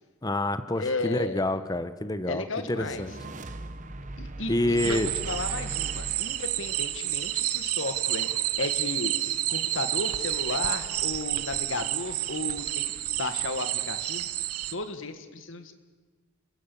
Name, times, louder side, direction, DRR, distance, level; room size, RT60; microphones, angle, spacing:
voice 1, 0.2-3.1 4.5-5.1, left 1 dB, 15° left, 12 dB, 0.9 m, -28 dB
voice 2, 0.8-1.4 2.3-3.1 4.2-8.3 8.6-9.1 9.5-14.3 14.7-15.7, left 3 dB, 60° left, 9 dB, 1.8 m, -34 dB
sound 1, 2.7-8.1, right 2 dB, 35° right, 1.1 m, -40 dB
sound 2, 4.8-14.7, right 14 dB, 85° right, 0.9 m, -30 dB
29.5 x 15.0 x 8.5 m, 1.4 s
head